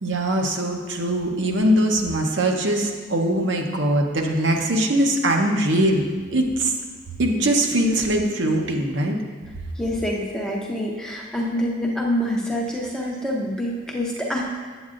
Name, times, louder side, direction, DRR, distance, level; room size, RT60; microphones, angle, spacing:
voice 1, 0.0-6.0 6.3-6.7 7.2-9.1, right 1 dB, 70° right, 1 dB, 0.8 m, -21 dB
voice 2, 9.8-14.4, equal, 5° left, -3 dB, 0.7 m, -26 dB
8.4 x 8.0 x 2.5 m, 1.5 s
head